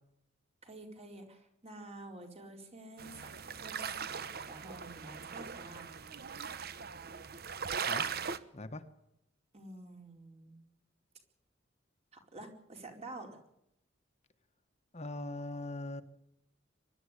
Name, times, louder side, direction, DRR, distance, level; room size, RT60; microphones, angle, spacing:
voice 1, 0.6-4.2 4.5-5.9 9.5-10.6 12.1-13.3, right 2 dB, 35° right, 4 dB, 4.5 m, -49 dB
sound 1, 3.0-8.4, right 6 dB, 55° right, 1.1 m, -39 dB
voice 2, 14.9-16.0, left 2 dB, 35° left, 9 dB, 1.3 m, -40 dB
24.0 x 12.0 x 9.9 m, 0.78 s
head